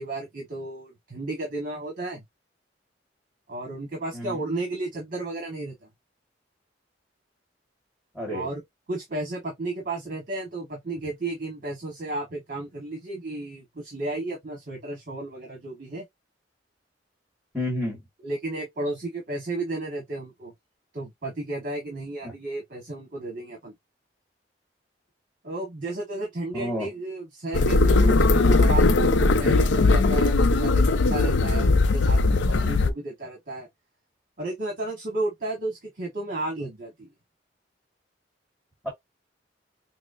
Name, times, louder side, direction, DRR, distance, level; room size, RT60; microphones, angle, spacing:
voice 1, 0.0-2.2 3.5-5.9 8.3-8.6 8.9-16.0 18.2-20.5 20.9-23.7 25.4-33.7 34.4-37.1, right 2 dB, 50° right, 1.2 m, -33 dB
voice 2, 8.2-8.5 17.5-18.0 22.2-22.3 26.5-26.9 38.8-38.9, left 1 dB, ahead, 1.8 m, -30 dB
sound 1, 27.5-32.9, left 3 dB, 90° left, 0.5 m, -19 dB
6.0 x 2.0 x 2.6 m
head